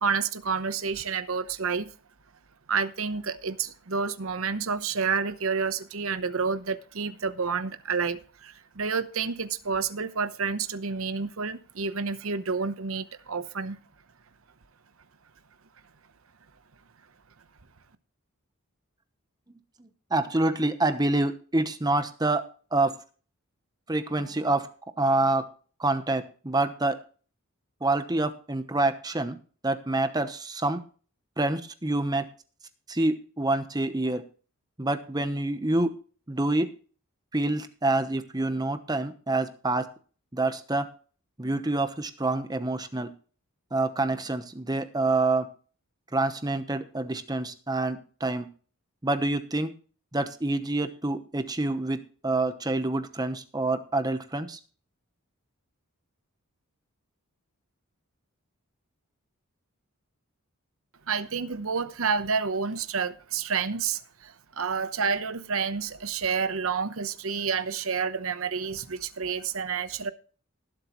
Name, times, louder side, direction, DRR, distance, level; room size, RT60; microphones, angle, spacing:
voice 1, 0.0-1.9 2.7-13.8 61.1-70.1, right 5 dB, 70° right, 0.9 m, -29 dB
voice 2, 19.8-22.4 22.7-22.9 23.9-24.7 25.0-25.4 25.8-26.9 27.8-29.4 29.6-30.8 31.4-32.2 32.9-34.2 34.8-35.9 36.3-36.7 37.3-39.9 40.3-40.9 41.4-43.1 43.7-45.5 46.1-48.5 49.0-49.7 50.1-52.0 52.2-54.6, right 2 dB, 20° right, 0.9 m, -27 dB
19.0 x 8.0 x 3.1 m
head